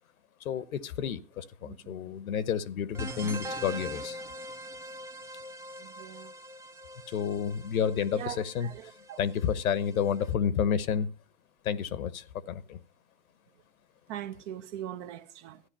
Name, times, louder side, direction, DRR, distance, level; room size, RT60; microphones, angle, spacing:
voice 1, 0.4-4.2 7.1-8.9 9.2-11.1 11.6-12.8, left 8 dB, 75° left, 1.1 m, -30 dB
voice 2, 1.6-1.9 5.8-6.3 8.1-9.2 14.1-15.6, right 11 dB, 55° right, 1.2 m, -41 dB
sound 1, 2.9-10.3, right 1 dB, 5° right, 0.5 m, -43 dB
13.5 x 9.8 x 5.5 m
hypercardioid pair, 115°, 43 cm